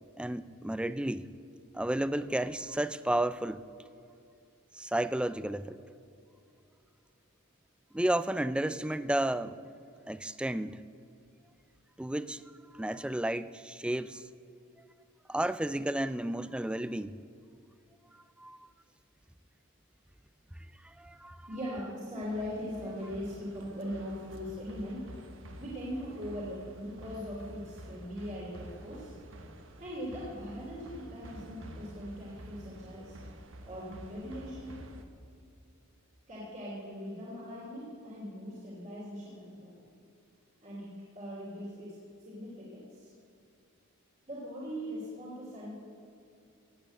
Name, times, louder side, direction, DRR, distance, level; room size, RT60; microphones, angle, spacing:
voice 1, 0.2-1.3 1.7-3.6 4.7-5.8 7.9-9.6 10.1-10.8 12.0-12.4 12.7-14.3 15.3-17.2 18.4-18.7 20.8-21.4, right 1 dB, 5° right, 14 dB, 0.3 m, -32 dB
voice 2, 21.5-25.1 25.6-29.1 29.8-33.2 33.6-34.8 36.3-39.7 40.6-42.0 42.2-43.1 44.3-45.7, equal, 35° right, -6 dB, 3.1 m, -40 dB
sound 1, 22.2-35.0, right 1 dB, 65° right, 1.3 m, -49 dB
17.5 x 8.4 x 7.9 m, 2.5 s
head